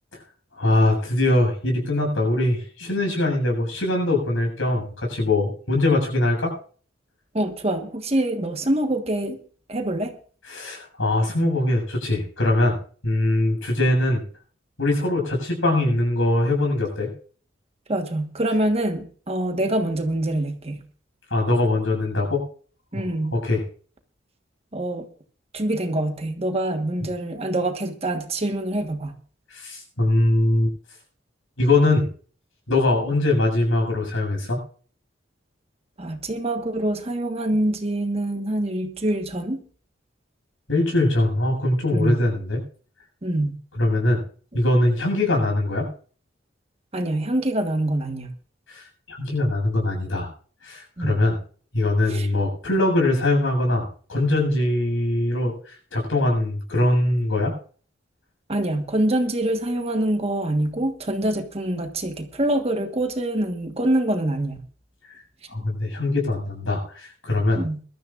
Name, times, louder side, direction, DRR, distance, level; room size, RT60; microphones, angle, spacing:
voice 1, 0.6-6.5 10.5-12.8 13.0-14.2 14.8-17.1 21.3-22.4 22.9-23.0 23.3-23.6 29.5-30.7 31.6-32.1 32.7-34.6 40.7-42.6 43.8-44.2 44.5-45.9 48.7-48.8 49.1-50.3 50.6-51.4 51.7-57.5 65.5-67.6, left 2 dB, 85° left, 1 dB, 7.4 m, -22 dB
voice 2, 7.3-9.4 9.7-10.1 17.9-20.8 22.9-23.4 24.7-25.1 25.5-29.1 36.0-39.6 41.9-42.2 43.2-43.5 46.9-48.3 51.0-51.2 52.1-52.3 58.5-64.6 67.5-67.8, right 1 dB, 30° right, 6 dB, 1.4 m, -25 dB
22.0 x 13.5 x 2.5 m, 0.43 s
head